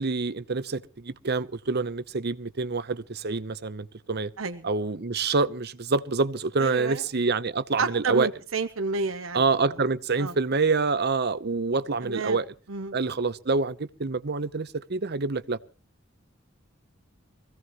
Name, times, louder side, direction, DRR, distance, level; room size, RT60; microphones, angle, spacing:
voice 1, 0.0-4.3 4.6-8.3 9.3-12.5 12.9-15.6, right 4 dB, 55° right, 0.8 m, -27 dB
voice 2, 4.4-4.7 6.6-7.0 7.8-9.4 10.2-10.3 12.0-12.4 12.7-13.0, right 4 dB, 85° right, 0.9 m, -30 dB
24.0 x 16.5 x 3.0 m
head